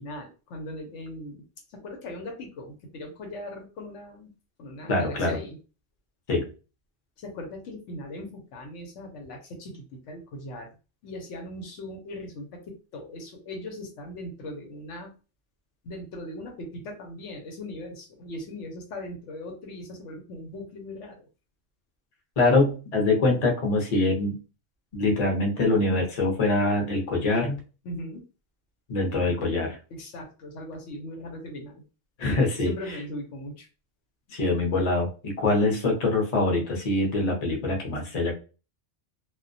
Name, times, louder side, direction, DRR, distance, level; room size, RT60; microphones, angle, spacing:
voice 1, 0.0-1.4 1.7-4.3 4.6-5.6 7.2-10.7 11.0-15.1 15.8-21.3 27.8-28.2 29.9-31.8 32.6-33.7, left 1 dB, 85° left, 3 dB, 1.0 m, -39 dB
voice 2, 4.9-5.4 6.3-6.5 22.4-24.4 24.9-27.6 28.9-29.8 32.2-32.7 34.3-38.3, left 2 dB, 40° left, 0 dB, 0.7 m, -24 dB
2.2 x 2.1 x 2.5 m, 0.33 s
omnidirectional pair, 1.2 m